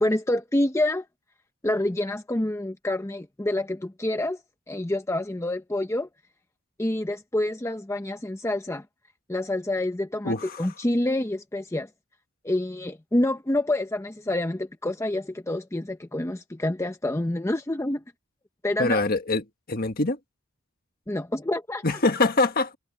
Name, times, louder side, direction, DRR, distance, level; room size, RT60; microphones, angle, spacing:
voice 1, 0.0-1.0 1.6-4.4 4.7-6.1 6.8-8.9 9.3-11.9 12.4-18.0 18.6-19.0 21.1-22.0, left 1 dB, 15° left, 0.7 m, -27 dB
voice 2, 10.2-10.7 18.8-19.4 19.7-20.2 21.8-22.7, left 3 dB, 45° left, 1.6 m, -24 dB
open air
head